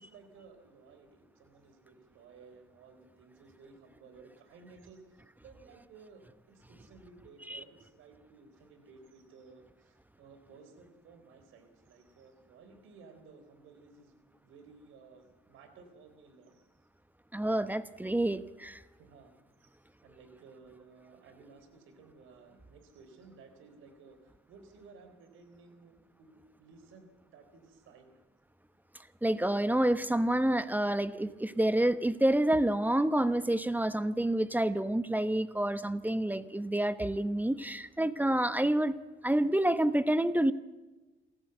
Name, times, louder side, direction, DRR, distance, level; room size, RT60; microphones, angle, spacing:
voice 1, 0.0-14.2 14.4-16.7 19.0-19.3 19.6-28.2, right 4 dB, 90° right, 8 dB, 4.0 m, -56 dB
voice 2, 17.3-18.8 29.2-39.0 39.2-40.5, right 1 dB, 10° right, 14 dB, 1.0 m, -28 dB
28.0 x 13.5 x 8.0 m, 1.2 s
cardioid pair, 90°, 20 cm